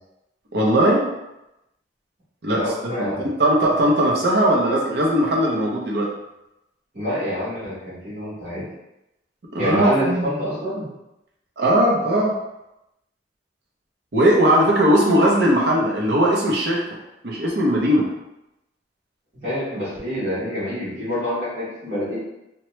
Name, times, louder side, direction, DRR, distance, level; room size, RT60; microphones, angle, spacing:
voice 1, 0.5-1.1 2.4-3.1 3.4-6.1 9.5-10.3 11.6-12.4 14.1-16.8 17.2-18.1, right 1 dB, 60° right, -2 dB, 0.6 m, -19 dB
voice 2, 2.5-3.3 6.9-8.7 9.6-10.9 19.4-22.2, equal, 40° right, -13 dB, 1.1 m, -26 dB
2.9 x 2.1 x 3.0 m, 0.91 s
head